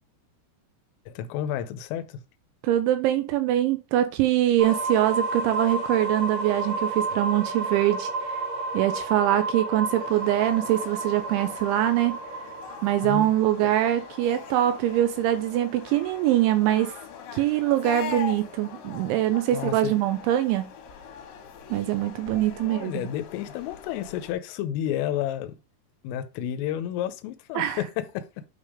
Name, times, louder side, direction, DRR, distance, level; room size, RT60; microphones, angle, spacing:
voice 1, 1.1-2.2 13.0-13.3 13.6-13.7 19.5-19.9 22.6-25.5 26.0-28.5, left 11 dB, 90° left, 3.3 m, -31 dB
voice 2, 2.6-8.1 8.7-12.2 12.8-16.9 17.3-20.7 21.7-23.0 27.6-27.8, right 13 dB, 80° right, 2.8 m, -23 dB
sound 1, 4.6-16.4, right 2 dB, 60° right, 1.7 m, -32 dB
sound 2, 10.0-24.3, left 7 dB, 70° left, 3.5 m, -42 dB
9.1 x 3.5 x 5.0 m
omnidirectional pair, 5.8 m